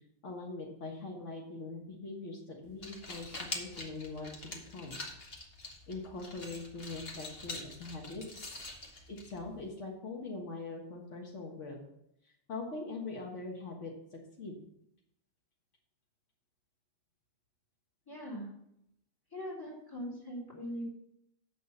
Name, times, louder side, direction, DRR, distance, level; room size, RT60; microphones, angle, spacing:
voice 1, 0.2-5.0 5.9-8.3 9.1-11.8 12.5-14.6, left 3 dB, 85° left, 1 dB, 1.8 m, -42 dB
sound 1, 2.6-9.7, left 2 dB, 55° left, 1.7 m, -45 dB
voice 2, 18.1-18.5 19.3-20.9, equal, 20° left, -4 dB, 3.3 m, -41 dB
7.6 x 6.2 x 6.6 m, 0.77 s
omnidirectional pair, 1.2 m